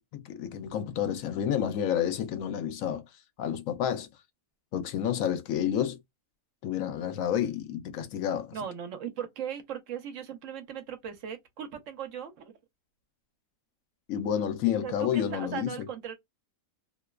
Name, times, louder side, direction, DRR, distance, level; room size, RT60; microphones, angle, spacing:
voice 1, 0.1-3.0 3.4-4.1 4.7-6.0 6.6-8.5 14.1-15.9, left 9 dB, 80° left, 1.0 m, -30 dB
voice 2, 8.5-12.5 14.8-16.1, right 8 dB, 70° right, 1.0 m, -38 dB
2.9 x 2.1 x 2.3 m
omnidirectional pair, 1.4 m